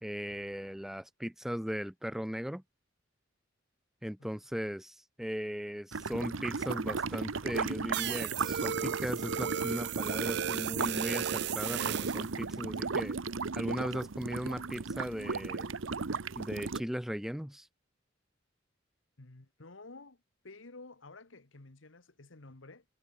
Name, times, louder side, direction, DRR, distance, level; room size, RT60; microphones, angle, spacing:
voice 1, 0.0-2.6 4.0-13.2 13.5-15.7 16.4-17.7, equal, ahead, 0.4 m, -37 dB
sound 1, 5.9-16.8, right 4 dB, 85° right, 0.9 m, -35 dB
sound 2, 7.9-12.3, right 9 dB, 60° right, 0.4 m, -35 dB
voice 2, 19.2-22.8, left 3 dB, 80° left, 1.6 m, -52 dB
head